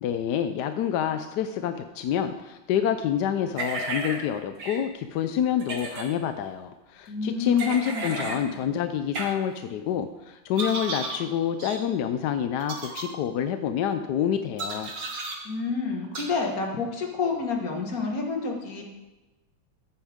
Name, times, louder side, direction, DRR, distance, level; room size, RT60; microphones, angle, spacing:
voice 1, 0.0-14.9, left 9 dB, 70° left, 8 dB, 1.0 m, -27 dB
sound 1, 3.6-4.2 4.6-4.8 5.6-6.1 7.6-8.4 9.1-9.3 10.6-11.2 11.6-11.8 12.6-13.0 14.6-15.4 16.1-16.3, right 2 dB, 80° right, 2.6 m, -33 dB
voice 2, 7.1-8.5 15.4-18.8, left 4 dB, 50° left, 1 dB, 2.1 m, -29 dB
14.5 x 9.2 x 3.6 m, 1.1 s
omnidirectional pair, 2.1 m